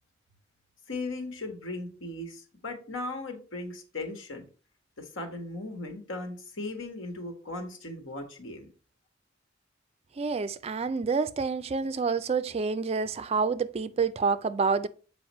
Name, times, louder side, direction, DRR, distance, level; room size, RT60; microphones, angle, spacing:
voice 1, 0.9-4.4 5.0-8.7, left 2 dB, 80° left, 1.5 m, -37 dB
voice 2, 10.2-14.9, right 5 dB, 30° right, 0.3 m, -28 dB
7.8 x 5.0 x 3.1 m
head